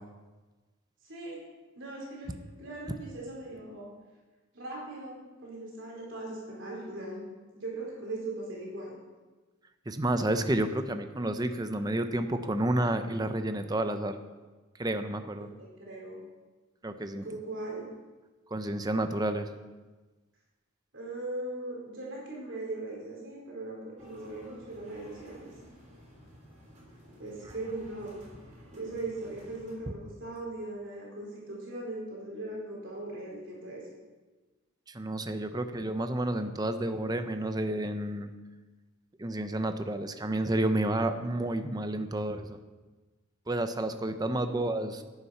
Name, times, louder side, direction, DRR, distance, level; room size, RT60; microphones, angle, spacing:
voice 1, 1.0-1.4 1.8-2.3 2.6-3.9 4.5-7.2 7.5-9.0 15.6-16.2 17.2-17.9 20.9-25.5 27.2-28.2 28.7-33.8, right 2 dB, 65° right, -3 dB, 4.5 m, -39 dB
voice 2, 9.9-14.2 14.8-15.5 16.8-17.2 18.5-19.5 34.9-38.3 39.2-42.6 43.5-45.0, right 1 dB, 20° right, 8 dB, 0.7 m, -30 dB
sound 1, 24.0-29.7, equal, 35° right, 3.7 m, -53 dB
11.5 x 9.8 x 5.8 m, 1.3 s
head